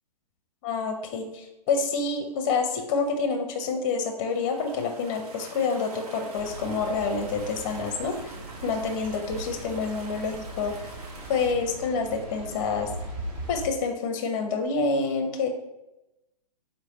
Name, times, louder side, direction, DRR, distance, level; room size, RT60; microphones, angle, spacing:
voice 1, 0.6-8.4 8.6-10.9 11.3-12.9 13.5-15.5, left 4 dB, 30° left, 5 dB, 0.6 m, -28 dB
sound 1, 4.2-11.5, right 3 dB, 65° right, 0.9 m, -46 dB
sound 2, 6.4-13.7, right 2 dB, 20° right, 0.5 m, -39 dB
4.4 x 3.1 x 3.0 m, 0.95 s
hypercardioid pair, 145°, 21 cm